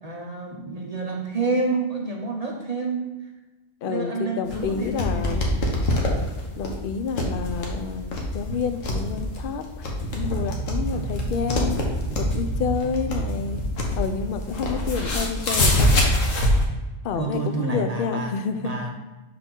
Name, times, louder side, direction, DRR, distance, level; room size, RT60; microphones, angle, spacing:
voice 1, 0.0-3.1 3.8-5.6 17.1-18.3 18.6-18.9, right 3 dB, 40° right, 1 dB, 0.6 m, -28 dB
voice 2, 3.8-5.4 6.6-11.8 12.1-13.6 14.0-15.9 17.0-18.7, left 6 dB, 60° left, 8 dB, 0.6 m, -29 dB
sound 1, 4.4-16.6, left 1 dB, 80° left, 1.4 m, -25 dB
sound 2, 10.2-14.9, right 4 dB, 80° right, 1.1 m, -33 dB
6.0 x 4.7 x 3.7 m, 1.1 s
omnidirectional pair, 1.3 m